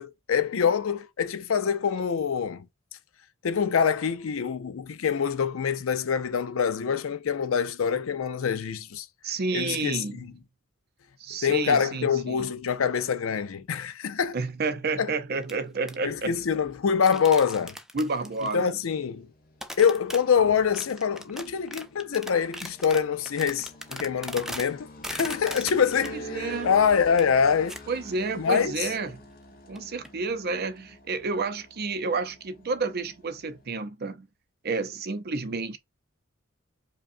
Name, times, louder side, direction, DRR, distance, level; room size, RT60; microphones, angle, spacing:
voice 1, 0.0-2.7 3.4-9.1 9.5-10.3 11.4-14.4 15.0-15.1 16.0-17.7 18.5-19.3 19.8-27.7 28.4-28.9, left 7 dB, 70° left, 0.5 m, -25 dB
voice 2, 9.2-10.3 11.2-12.5 14.3-16.4 17.9-18.6 26.3-26.7 27.9-29.2 29.7-34.3 34.6-35.8, right 3 dB, 50° right, 0.6 m, -30 dB
sound 1, 15.4-15.6 15.9-16.0 17.0-18.7 19.6-20.3 20.7-24.7 25.0-26.1 26.5-26.7 27.2-27.3 27.7-27.8 28.1-28.2 29.0-29.1 29.7-29.8 30.0-30.1, equal, ahead, 0.4 m, -39 dB
sound 2, 18.2-33.7, equal, 45° left, 0.9 m, -47 dB
5.0 x 2.3 x 2.6 m
head